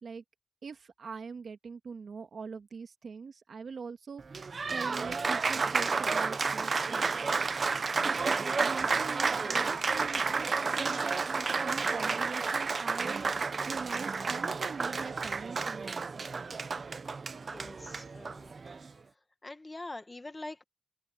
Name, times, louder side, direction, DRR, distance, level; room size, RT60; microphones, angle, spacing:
voice 1, 0.6-7.2 8.2-11.3 11.6-16.2, right 5 dB, 60° right, 1.9 m, -43 dB
Applause, 4.2-18.9, right 4 dB, 40° right, 0.5 m, -31 dB
voice 2, 17.3-18.5 19.4-20.6, left 2 dB, 20° left, 1.3 m, -44 dB
open air
wide cardioid pair, 180°, 0 cm